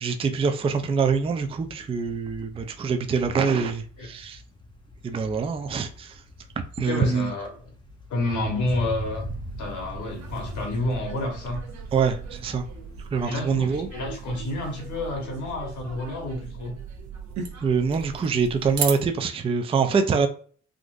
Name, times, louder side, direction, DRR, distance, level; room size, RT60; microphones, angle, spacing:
voice 1, 0.0-4.4 5.0-6.2 6.8-7.3 11.9-12.7 13.1-13.9 17.6-20.3, right 5 dB, 20° right, 0.3 m, -25 dB
sound 1, 0.6-16.5, left 2 dB, 15° left, 0.7 m, -43 dB
voice 2, 6.8-7.5 8.1-9.3 9.6-11.6 13.2-16.8, left 2 dB, 75° left, 1.2 m, -29 dB
sound 2, 8.7-19.2, right 6 dB, 70° right, 0.7 m, -38 dB
3.7 x 2.5 x 2.4 m
cardioid pair, 90°, 30 cm